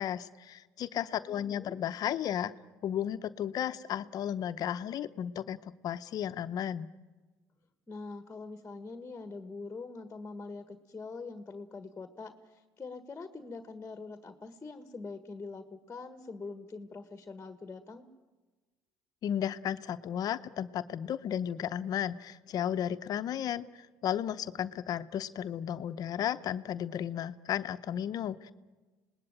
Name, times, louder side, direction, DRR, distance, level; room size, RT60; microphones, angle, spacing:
voice 1, 0.0-2.5 2.8-6.9 19.2-28.5, left 10 dB, 55° left, 11 dB, 0.8 m, -34 dB
voice 2, 1.2-1.8 7.9-18.1, left 3 dB, 20° left, 10 dB, 1.6 m, -44 dB
26.5 x 20.0 x 9.0 m, 1.3 s
supercardioid pair, 100°, 8 cm